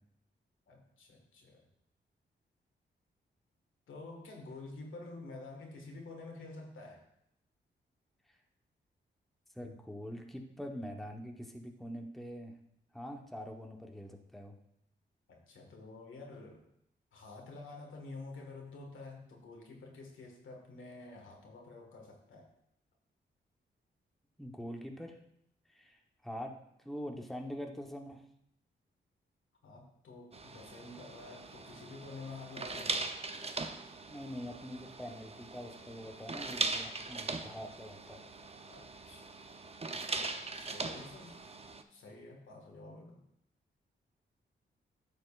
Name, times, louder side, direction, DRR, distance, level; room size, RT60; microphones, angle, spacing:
voice 1, 0.7-1.6 3.9-7.0 15.3-16.6 17.1-22.5 29.6-33.1 37.3-37.6 38.7-39.2 40.5-41.6 41.9-43.2, left 3 dB, 80° left, 0 dB, 1.7 m, -49 dB
voice 2, 9.5-12.5 12.9-14.6 24.4-25.2 25.7-26.5 26.8-28.2 34.1-38.2, equal, ahead, 2 dB, 1.0 m, -44 dB
sound 1, 30.3-41.8, right 3 dB, 30° right, 0.6 m, -40 dB
10.5 x 6.4 x 2.5 m, 0.76 s
cardioid pair, 60°, 20 cm